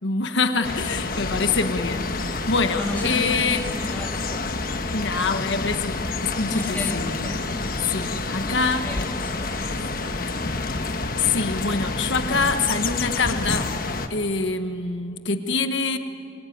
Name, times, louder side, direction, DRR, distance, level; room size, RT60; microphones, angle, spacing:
voice 1, 0.0-3.6 4.9-7.3 7.8-8.9 11.2-13.7 14.1-16.0, left 4 dB, 80° left, 7 dB, 1.3 m, -25 dB
sound 1, 0.6-14.1, left 3 dB, 50° left, 1.3 m, -28 dB
voice 2, 2.7-4.6 5.1-5.4 6.4-7.5 8.4-10.4, left 1 dB, 10° left, -1 dB, 3.3 m, -34 dB
26.5 x 23.5 x 9.4 m, 2.5 s
head